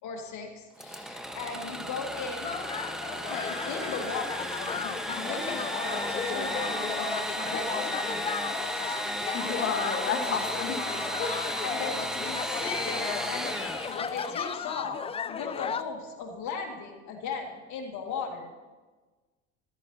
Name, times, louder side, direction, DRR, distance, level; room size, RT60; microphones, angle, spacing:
voice 1, 0.0-2.6 3.1-8.3 11.6-13.6 13.9-18.5, left 5 dB, 60° left, 3 dB, 2.0 m, -37 dB
Engine / Sawing, 0.8-14.5, equal, ahead, 1.1 m, -34 dB
sound 1, 2.4-15.8, left 7 dB, 20° left, 0.3 m, -36 dB
voice 2, 9.2-10.8 11.2-11.5, left 6 dB, 40° left, 5 dB, 1.4 m, -31 dB
13.5 x 12.5 x 2.8 m, 1.3 s
hypercardioid pair, 80°, 33 cm